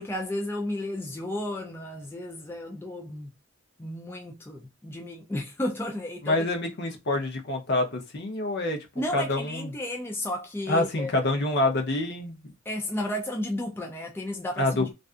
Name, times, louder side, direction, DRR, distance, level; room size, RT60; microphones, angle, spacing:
voice 1, 0.0-3.3 3.8-6.5 9.0-11.1 12.7-14.9, left 1 dB, 10° left, 0.3 m, -33 dB
voice 2, 6.2-8.9 9.1-9.7 10.7-12.5 14.6-14.9, left 2 dB, 55° left, 0.7 m, -27 dB
2.5 x 2.3 x 2.4 m
head